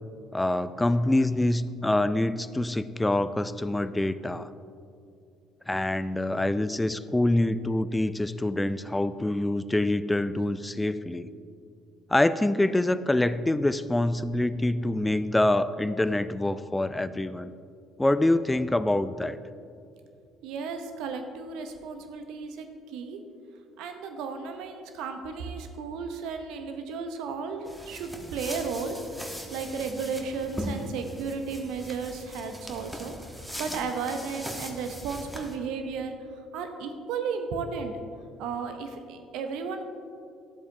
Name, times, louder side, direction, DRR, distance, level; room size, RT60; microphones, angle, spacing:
voice 1, 0.3-4.5 5.7-11.3 12.1-17.5 18.0-19.4, left 1 dB, 10° left, 14 dB, 0.3 m, -25 dB
voice 2, 20.4-22.6 22.9-23.2 23.8-29.0 29.3-36.1 36.5-37.9 38.4-39.9, right 5 dB, 65° right, 7 dB, 0.7 m, -34 dB
sound 1, 27.7-35.6, equal, 5° right, 1.2 m, -40 dB
11.5 x 7.7 x 2.7 m, 2.4 s
hypercardioid pair, 55°, 0 cm